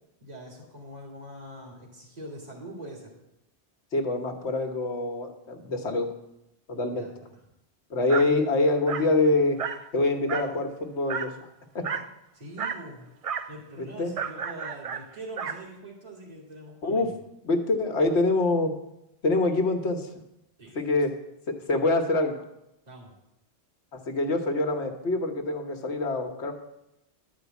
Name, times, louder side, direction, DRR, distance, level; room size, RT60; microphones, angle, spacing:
voice 1, 0.2-3.1 6.8-7.3 12.3-13.1 13.5-17.2 20.6-20.8 22.9-23.1, right 1 dB, 35° right, -2 dB, 2.3 m, -43 dB
voice 2, 3.9-6.1 6.7-7.1 7.9-9.6 9.9-11.3 11.7-11.9 13.8-14.1 16.8-17.1 17.4-18.7 19.2-20.1 20.7-21.1 21.5-22.4 23.9-26.5, left 2 dB, 75° left, 4 dB, 1.5 m, -25 dB
Dog, 8.1-8.3 8.9-9.1 9.6-9.9 10.3-10.6 11.1-11.3 11.8-12.1 12.6-12.9 13.2-13.5 14.2-15.6, right 6 dB, 55° right, 0.4 m, -32 dB
11.5 x 5.1 x 8.2 m, 0.87 s
omnidirectional pair, 1.2 m